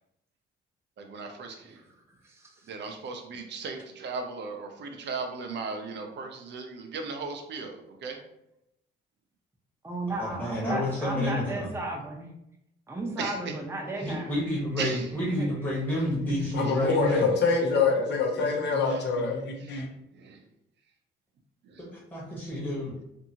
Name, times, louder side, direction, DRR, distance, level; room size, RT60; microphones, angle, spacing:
voice 1, 1.0-1.8 2.7-8.2 13.2-13.4 14.8-15.1 18.8-19.0 19.6-19.8 20.1-20.4 21.6-21.9, right 4 dB, 60° right, 4 dB, 0.6 m, -37 dB
voice 2, 2.2-2.7 9.8-12.3 12.9-14.7 15.1-15.5 15.9-16.3, right 2 dB, 10° right, -2 dB, 0.7 m, -35 dB
voice 3, 10.2-11.7 14.0-17.3 21.9-23.0, left 1 dB, 10° left, -6 dB, 1.1 m, -30 dB
voice 4, 16.3-19.9, left 4 dB, 60° left, 1 dB, 0.7 m, -25 dB
2.6 x 2.6 x 2.8 m, 0.82 s
cardioid pair, 90°, 20 cm